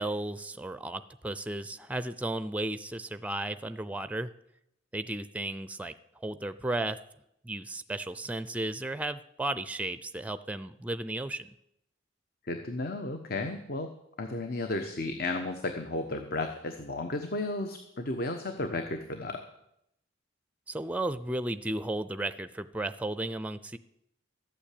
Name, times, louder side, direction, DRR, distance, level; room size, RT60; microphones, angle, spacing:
voice 1, 0.0-4.3 4.9-7.0 7.4-11.5 20.7-23.8, right 1 dB, 10° right, 13 dB, 0.5 m, -34 dB
voice 2, 12.4-13.9 14.2-19.4, left 2 dB, 50° left, 6 dB, 1.1 m, -33 dB
13.5 x 8.8 x 8.4 m, 0.78 s
head